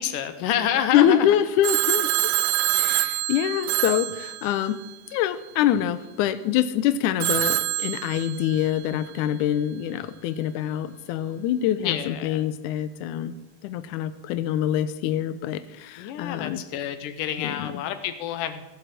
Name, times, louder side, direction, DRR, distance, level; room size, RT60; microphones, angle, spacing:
voice 1, 0.0-1.4 11.8-12.4 16.0-18.6, left 10 dB, 70° left, 10 dB, 2.4 m, -28 dB
voice 2, 0.9-2.3 2.7-4.8 5.1-13.3 13.6-16.6 17.4-17.8, left 11 dB, 90° left, 12 dB, 1.8 m, -25 dB
Telephone, 1.6-4.9 7.2-8.7, right 18 dB, 85° right, 1.8 m, -25 dB
16.5 x 8.4 x 7.7 m, 1.1 s
omnidirectional pair, 4.3 m